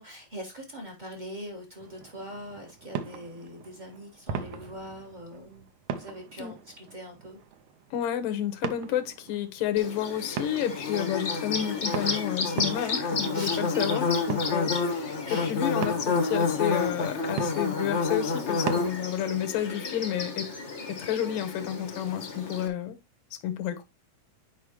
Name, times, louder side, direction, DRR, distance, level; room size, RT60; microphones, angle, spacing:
voice 1, 0.0-5.7 6.0-7.4 13.3-14.0 15.2-15.5 20.9-21.1, equal, 45° right, 0.5 m, -42 dB
sound 1, 1.8-19.3, right 8 dB, 70° right, 2.1 m, -40 dB
voice 2, 7.9-20.5 20.9-23.0 23.4-23.8, left 10 dB, 85° left, 2.7 m, -31 dB
Bird / Buzz, 9.8-22.7, left 4 dB, 60° left, 0.7 m, -29 dB
10.0 x 5.0 x 3.0 m
omnidirectional pair, 3.8 m